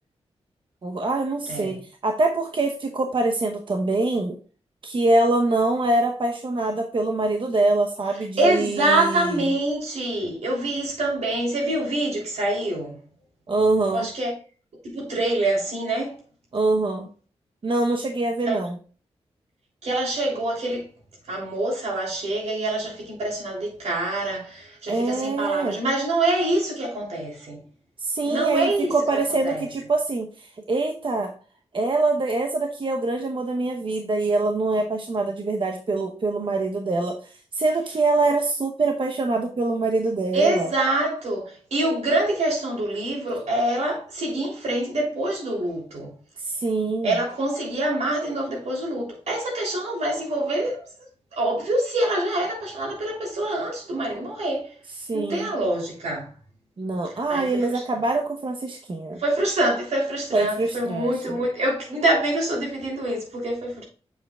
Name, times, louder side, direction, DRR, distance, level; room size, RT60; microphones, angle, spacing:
voice 1, 0.8-4.4 4.8-9.4 13.5-14.1 16.5-17.1 17.6-18.8 24.9-25.8 28.0-31.3 31.7-40.7 46.4-47.1 55.0-55.5 56.8-59.2 60.3-61.4, right 2 dB, 50° right, 0.9 m, -24 dB
voice 2, 1.5-1.8 8.4-13.0 13.9-14.3 14.8-16.2 18.4-18.6 19.8-20.9 21.3-27.6 28.2-29.7 40.3-46.1 47.0-50.9 51.3-54.7 55.1-56.3 57.3-57.8 59.2-63.8, right 1 dB, 80° right, 3.3 m, -25 dB
7.1 x 6.7 x 2.4 m
cardioid pair, 60°, 11 cm